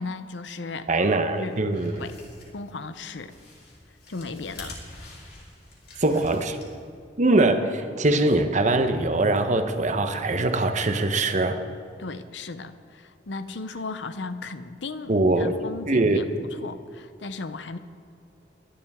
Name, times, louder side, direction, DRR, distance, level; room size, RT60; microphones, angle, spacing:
voice 1, 0.0-0.9 1.3-1.6 1.9-2.2 2.5-3.3 4.1-4.8 12.0-17.8, left 3 dB, 85° left, 12 dB, 0.7 m, -36 dB
voice 2, 0.9-2.0 6.0-6.6 7.2-11.6 15.1-15.6 15.9-16.2, right 2 dB, 45° right, 7 dB, 1.0 m, -22 dB
sound 1, 1.5-7.0, left 2 dB, 60° left, 3.5 m, -46 dB
22.0 x 11.5 x 3.6 m, 2.5 s
head